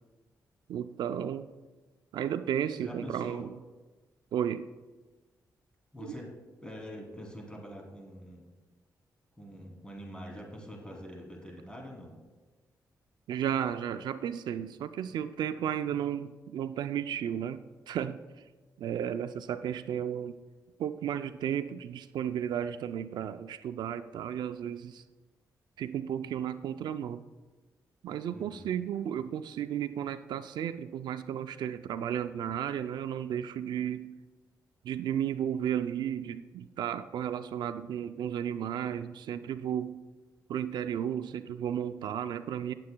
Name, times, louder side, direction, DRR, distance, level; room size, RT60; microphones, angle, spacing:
voice 1, 0.7-1.5 2.1-3.5 4.3-4.7 6.0-6.1 13.3-18.2 18.8-20.4 20.8-25.0 25.8-27.2 28.0-34.1 34.8-40.0 40.5-42.7, right 9 dB, 85° right, 11 dB, 0.4 m, -33 dB
voice 2, 2.8-3.4 5.9-6.3 6.6-8.5 9.4-12.2 28.3-28.7, equal, 15° left, 0 dB, 2.8 m, -44 dB
16.5 x 7.6 x 2.2 m, 1.3 s
cardioid pair, 75°, 7 cm